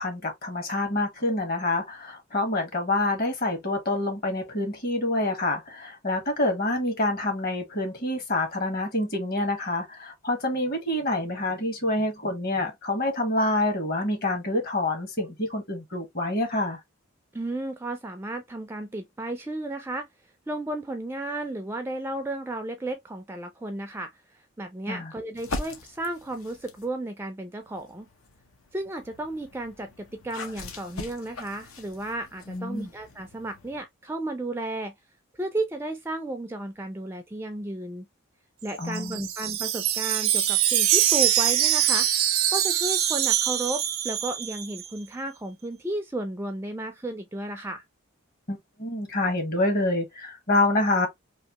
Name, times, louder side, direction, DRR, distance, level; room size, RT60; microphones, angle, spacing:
voice 1, 0.0-16.8 24.9-25.1 32.5-32.9 38.8-39.3 48.5-51.1, left 2 dB, 45° left, 1.2 m, -27 dB
voice 2, 17.3-20.1 20.5-24.1 24.6-28.1 28.7-34.9 35.4-38.1 38.6-42.1 42.5-47.8, right 1 dB, 10° right, 0.4 m, -33 dB
sound 1, 25.4-26.9 27.6-33.8, left 2 dB, 80° left, 0.8 m, -41 dB
Wind chime, 38.7-44.9, right 11 dB, 80° right, 0.6 m, -24 dB
3.1 x 2.5 x 2.8 m
head